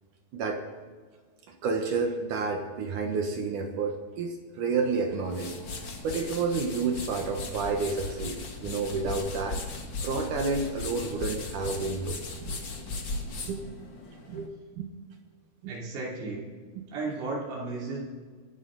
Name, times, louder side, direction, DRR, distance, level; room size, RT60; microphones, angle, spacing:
voice 1, 1.6-5.5 6.0-9.6 10.0-12.6 12.9-13.0 13.5-13.6 14.3-14.9 15.6-15.7 16.8-16.9, right 4 dB, 65° right, 4 dB, 2.3 m, -30 dB
sound 1, 5.1-14.5, left 3 dB, 50° left, 1.3 m, -37 dB
voice 2, 15.7-16.4 16.9-18.0, right 3 dB, 90° right, -4 dB, 5.3 m, -34 dB
27.0 x 11.5 x 4.0 m, 1.5 s
omnidirectional pair, 4.6 m